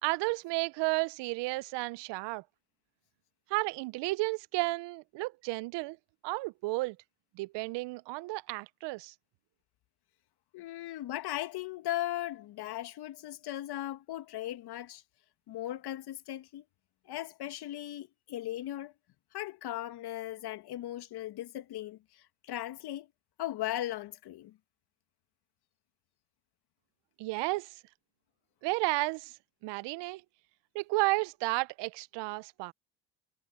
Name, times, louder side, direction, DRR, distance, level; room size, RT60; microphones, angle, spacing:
voice 1, 0.0-2.4 3.5-6.0 6.2-7.0 7.3-9.1 27.2-27.8 28.6-29.4 29.6-30.2 30.7-32.7, right 23 dB, 65° right, 1.0 m, -32 dB
voice 2, 10.5-15.0 15.5-16.6 17.1-18.9 19.3-23.1 23.4-24.5, left 14 dB, 55° left, 1.8 m, -38 dB
hypercardioid pair, 65°, 46 cm